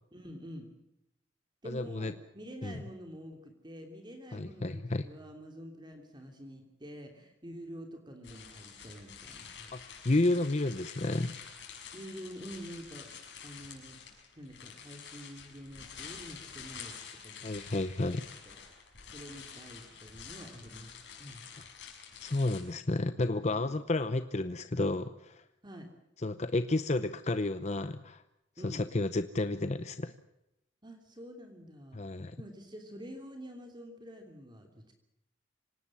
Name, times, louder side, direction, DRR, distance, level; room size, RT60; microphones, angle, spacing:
voice 1, 0.1-0.7 1.6-9.9 11.9-13.1 13.4-14.0 14.4-17.5 18.1-18.6 19.1-20.9 21.2-21.4 23.5-23.8 25.6-25.9 28.6-28.8 30.8-34.9, equal, 25° right, 4 dB, 3.0 m, -47 dB
voice 2, 1.7-2.1 2.6-2.7 4.3-5.0 9.7-11.3 17.4-18.3 21.6-21.7 22.2-25.4 26.2-28.2 28.6-30.1 31.9-32.4, left 2 dB, 35° left, 11 dB, 0.8 m, -31 dB
sound 1, 8.2-22.6, left 7 dB, 65° left, 6.3 m, -48 dB
26.0 x 18.5 x 7.4 m, 0.87 s
head